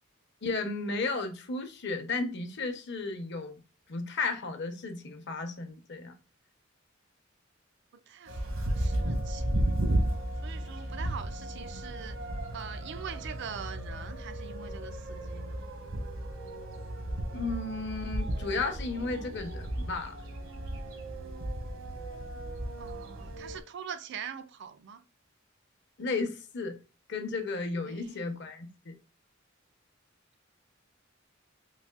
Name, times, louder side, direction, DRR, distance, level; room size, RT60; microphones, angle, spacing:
voice 1, 0.4-3.6 3.9-6.1 17.3-20.1 26.0-26.8 27.1-28.9, left 3 dB, 60° left, 0.8 m, -34 dB
voice 2, 8.1-9.4 10.4-12.2 12.5-15.6 22.8-25.0 27.9-28.2, right 7 dB, 60° right, 0.4 m, -43 dB
sound 1, 8.3-23.6, right 1 dB, 75° right, 0.9 m, -34 dB
4.0 x 2.6 x 2.3 m
head